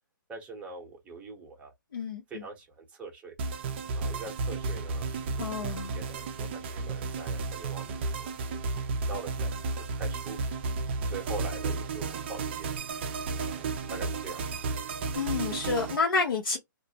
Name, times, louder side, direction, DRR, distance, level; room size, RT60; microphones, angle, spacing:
voice 1, 0.3-1.7 2.3-3.3 3.9-8.6 8.9-10.4 11.1-12.7 13.4-14.5, right 3 dB, 10° right, 0.8 m, -43 dB
voice 2, 1.9-2.4 5.4-5.9 15.2-16.6, left 4 dB, 80° left, 0.9 m, -29 dB
sound 1, 3.4-16.0, right 4 dB, 30° right, 0.4 m, -33 dB
2.4 x 2.0 x 2.8 m
hypercardioid pair, 155°, 11 cm